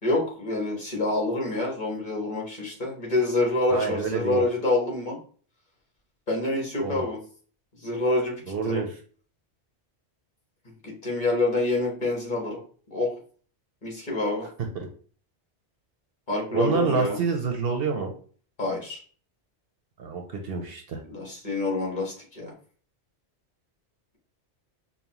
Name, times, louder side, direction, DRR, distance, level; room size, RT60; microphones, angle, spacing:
voice 1, 0.0-5.2 6.3-7.2 7.8-8.4 8.6-8.8 10.8-12.6 12.9-13.2 13.8-14.5 16.3-17.2 18.6-19.0 21.1-22.5, left 2 dB, 40° left, -2 dB, 1.5 m, -27 dB
voice 2, 3.7-4.4 6.8-7.0 8.5-8.9 16.5-18.1 20.0-21.0, right 5 dB, 60° right, 3 dB, 0.8 m, -27 dB
5.3 x 2.2 x 2.9 m, 0.43 s
omnidirectional pair, 1.2 m